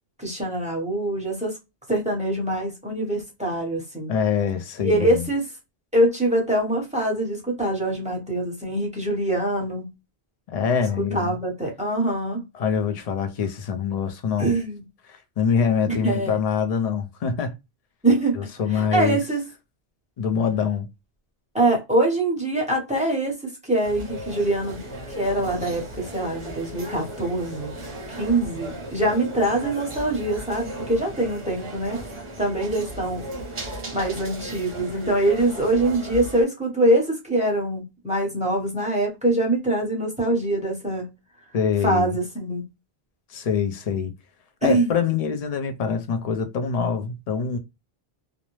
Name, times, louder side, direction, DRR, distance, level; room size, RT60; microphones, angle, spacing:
voice 1, 0.2-1.5 1.9-4.1 4.8-5.4 5.9-9.9 11.0-12.5 14.4-14.8 16.0-16.3 18.0-18.4 18.7-19.4 21.5-23.3 23.6-27.7 28.1-32.0 32.4-33.2 33.9-41.1 41.8-42.6 44.6-44.9, right 1 dB, 5° right, 0.9 m, -24 dB
voice 2, 4.1-5.3 10.5-11.4 12.5-14.5 15.1-17.6 18.6-19.2 20.2-20.9 41.5-42.1 43.3-44.1 44.6-47.6, left 6 dB, 50° left, 0.5 m, -24 dB
sound 1, 23.8-36.4, right 1 dB, 35° right, 0.7 m, -36 dB
2.5 x 2.0 x 2.9 m
omnidirectional pair, 1.0 m